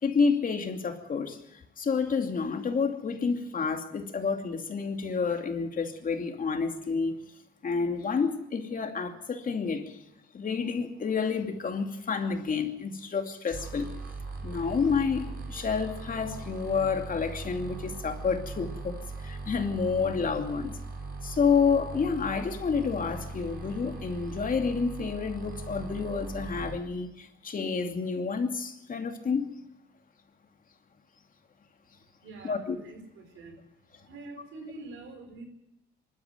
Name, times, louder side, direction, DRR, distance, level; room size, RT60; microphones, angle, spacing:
voice 1, 0.0-7.2 7.6-10.0 10.3-13.9 14.4-20.8 21.2-29.5 32.4-32.8, left 5 dB, 45° left, 5 dB, 2.7 m, -29 dB
sound 1, 13.5-26.8, right 3 dB, 50° right, 4.7 m, -40 dB
voice 2, 32.2-33.6 34.1-35.5, right 3 dB, 85° right, 6 dB, 4.9 m, -45 dB
24.0 x 12.5 x 9.1 m, 0.80 s
cardioid pair, 90°, 20 cm